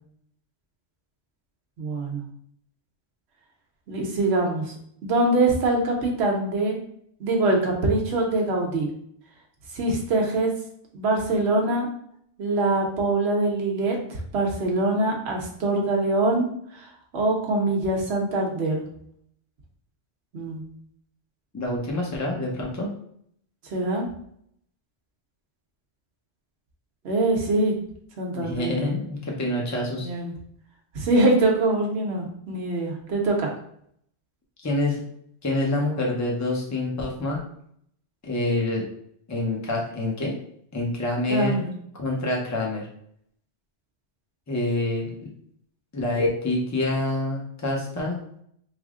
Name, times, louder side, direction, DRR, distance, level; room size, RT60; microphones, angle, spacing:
voice 1, 1.8-2.2 3.9-4.6 5.0-6.8 7.2-8.9 9.7-10.5 10.9-11.9 12.4-16.5 16.7-18.8 20.3-20.6 23.6-24.1 27.0-27.8 28.2-28.8 30.0-30.3 30.9-33.5 41.3-41.7, right 2 dB, 70° right, 0 dB, 1.0 m, -23 dB
voice 2, 21.5-22.9 28.3-30.1 34.6-35.0 35.4-37.4 38.2-38.8 39.3-40.3 40.7-41.6 41.9-42.9 44.5-45.3 45.9-48.2, left 2 dB, 20° left, -1 dB, 0.5 m, -26 dB
3.4 x 2.0 x 3.6 m, 0.68 s
omnidirectional pair, 1.2 m